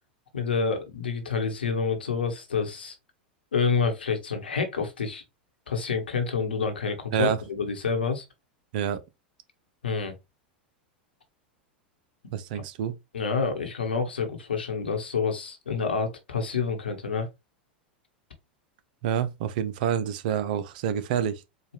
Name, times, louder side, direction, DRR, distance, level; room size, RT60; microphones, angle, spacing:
voice 1, 0.3-3.0 3.5-5.2 5.7-8.2 9.8-10.2 12.5-12.6 13.1-17.3, left 5 dB, 80° left, 1.0 m, -28 dB
voice 2, 12.3-13.0 19.0-21.4, right 9 dB, 55° right, 0.6 m, -27 dB
4.5 x 2.4 x 3.3 m
figure-of-eight pair, 90°, 5 cm